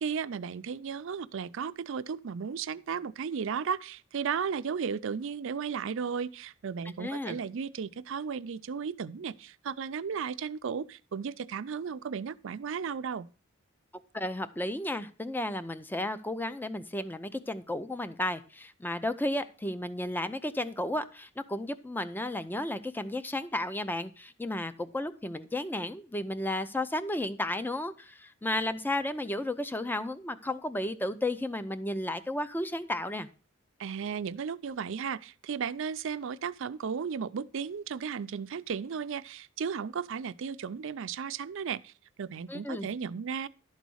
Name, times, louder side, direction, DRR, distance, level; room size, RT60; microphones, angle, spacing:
voice 1, 0.0-13.3 33.8-41.9 42.2-43.5, right 6 dB, 65° right, 0.4 m, -35 dB
voice 2, 7.0-7.4 14.1-33.3 42.5-42.9, left 1 dB, 10° left, 0.5 m, -33 dB
11.5 x 4.1 x 6.2 m
head